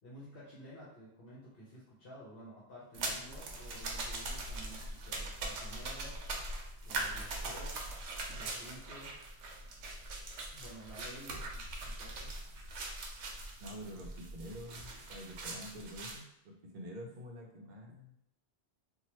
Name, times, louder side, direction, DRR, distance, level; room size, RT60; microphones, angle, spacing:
voice 1, 0.0-6.2 6.8-7.9 8.3-9.2 10.5-12.3, equal, 60° left, -8 dB, 1.0 m, -52 dB
sound 1, 2.9-16.2, right 2 dB, 85° right, 0.9 m, -41 dB
voice 2, 13.6-18.1, equal, 55° right, 0 dB, 0.6 m, -47 dB
2.9 x 2.2 x 3.0 m, 0.80 s
omnidirectional pair, 1.1 m